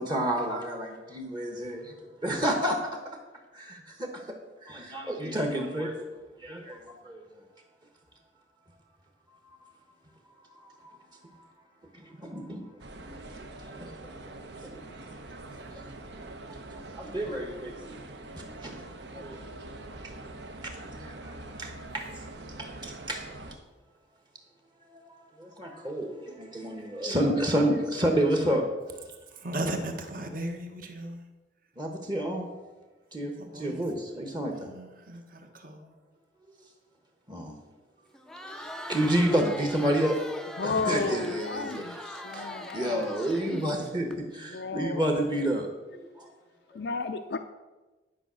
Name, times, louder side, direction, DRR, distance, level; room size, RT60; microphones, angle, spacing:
voice 1, 0.0-1.9 2.2-3.2 3.5-4.3 4.6-6.1 6.4-7.2 10.6-11.0 11.9-12.7 13.4-14.2 14.6-14.9 15.7-15.8 16.7-18.0 18.6-18.7 19.1-19.4 20.0-22.3 22.6-23.2 24.9-28.6 31.8-32.5 33.1-34.7 37.3-37.6 38.4-40.2 40.6-41.8 42.3-46.3 46.7-46.8, right 1 dB, 25° right, 3 dB, 1.1 m, -30 dB
sound 1, 12.8-23.6, right 2 dB, 65° right, 0.9 m, -44 dB
voice 2, 29.4-31.2 33.5-33.8 34.6-35.2 35.6-35.9, right 1 dB, 45° right, 5 dB, 1.2 m, -35 dB
Crowd, 38.1-44.1, left 1 dB, 5° left, 0.5 m, -41 dB
voice 3, 40.6-43.1 44.5-45.3 46.7-47.4, left 4 dB, 55° left, 7 dB, 0.4 m, -33 dB
11.0 x 5.3 x 6.1 m, 1.2 s
head